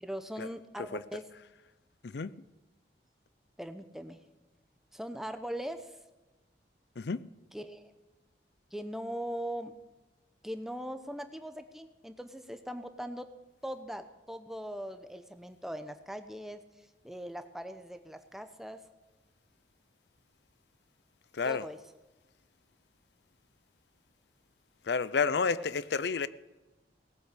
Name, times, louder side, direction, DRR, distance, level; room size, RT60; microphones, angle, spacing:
voice 1, 0.0-1.3 3.6-4.2 4.9-6.0 7.5-7.9 8.7-9.7 10.4-13.3 13.6-18.8 21.4-21.8 25.6-25.7, equal, ahead, 0.7 m, -40 dB
voice 2, 24.9-26.3, left 5 dB, 75° left, 0.5 m, -30 dB
18.0 x 8.0 x 8.3 m
head